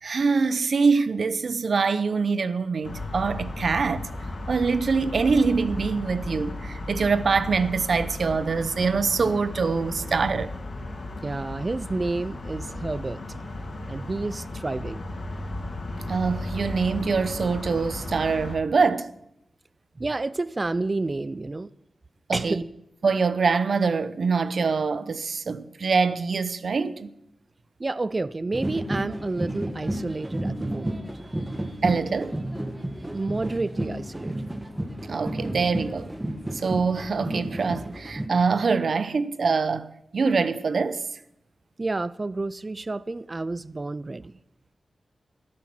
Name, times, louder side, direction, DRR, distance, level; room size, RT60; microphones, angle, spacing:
voice 1, 0.0-4.1 4.5-10.5 16.1-19.1 22.3-22.6 23.0-27.1 31.8-32.4 35.1-36.1 36.5-41.0, right 4 dB, 65° right, 0.8 m, -24 dB
sound 1, 2.8-18.6, left 2 dB, 60° left, 3.1 m, -35 dB
voice 2, 11.2-13.2 13.9-15.1 20.0-21.7 22.3-22.6 27.8-31.8 33.1-34.5 41.8-44.3, right 2 dB, 30° right, 0.4 m, -30 dB
sound 2, 28.5-38.3, right 1 dB, 15° right, 1.6 m, -32 dB
13.0 x 12.0 x 6.0 m
wide cardioid pair, 85°, 0 cm